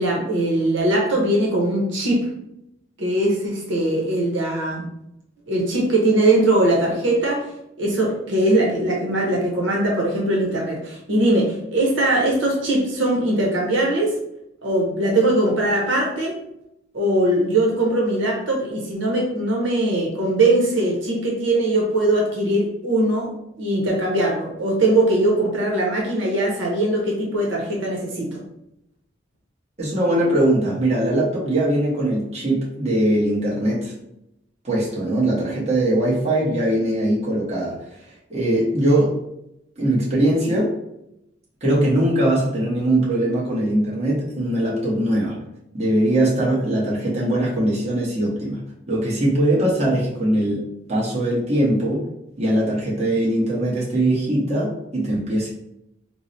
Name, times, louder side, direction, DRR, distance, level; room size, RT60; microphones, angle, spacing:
voice 1, 0.0-2.3 3.0-4.9 5.5-7.5 7.8-14.1 14.6-16.3 16.9-23.3 23.6-28.4, right 1 dB, 85° right, -2 dB, 0.9 m, -21 dB
voice 2, 29.8-33.9 34.6-37.8 38.3-39.1 39.8-40.7 41.6-45.4 45.7-48.6 48.9-50.6 50.9-52.0 52.4-55.5, right 1 dB, 35° right, -5 dB, 1.0 m, -21 dB
4.6 x 2.1 x 2.6 m, 0.81 s
head